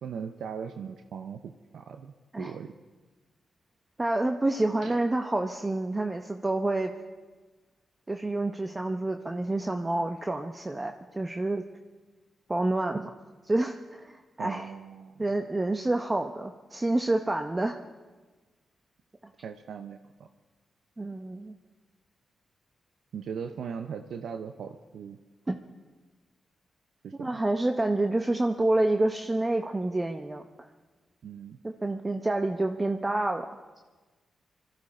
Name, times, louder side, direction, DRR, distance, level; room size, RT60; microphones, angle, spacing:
voice 1, 0.0-2.7 4.8-5.0 14.4-15.2 19.4-20.3 23.1-25.2 27.0-27.3 31.2-31.6, right 7 dB, 80° right, 7 dB, 0.6 m, -39 dB
voice 2, 4.0-6.9 8.1-11.6 12.5-13.1 13.4-14.7 15.2-17.8 21.0-21.5 25.5-25.6 27.1-30.7 31.6-33.5, right 2 dB, 25° right, 5 dB, 0.8 m, -28 dB
21.0 x 14.0 x 4.3 m, 1.3 s
cardioid pair, 55°, 0 cm